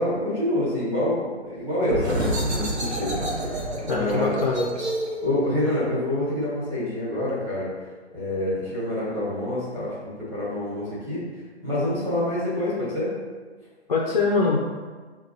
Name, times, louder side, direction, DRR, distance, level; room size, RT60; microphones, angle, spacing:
voice 1, 0.0-3.2 3.4-4.4 5.2-7.7 8.1-11.2 11.6-13.1, left 1 dB, 5° right, -10 dB, 1.1 m, -27 dB
sound 1, 1.8-7.2, right 1 dB, 70° right, 1.0 m, -29 dB
voice 2, 3.9-4.7 13.9-14.6, left 4 dB, 40° left, -2 dB, 0.4 m, -23 dB
6.7 x 2.3 x 2.7 m, 1.4 s
figure-of-eight pair, 135°, 34 cm